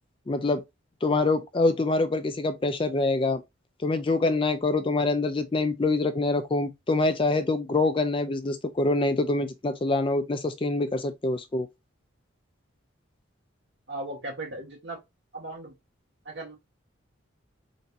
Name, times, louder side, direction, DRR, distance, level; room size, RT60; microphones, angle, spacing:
voice 1, 0.3-0.6 1.0-3.4 3.8-11.7, left 2 dB, 25° left, 0.4 m, -25 dB
voice 2, 13.9-15.0 15.3-15.7 16.3-16.6, right 2 dB, 55° right, 1.8 m, -37 dB
4.2 x 3.9 x 2.6 m
head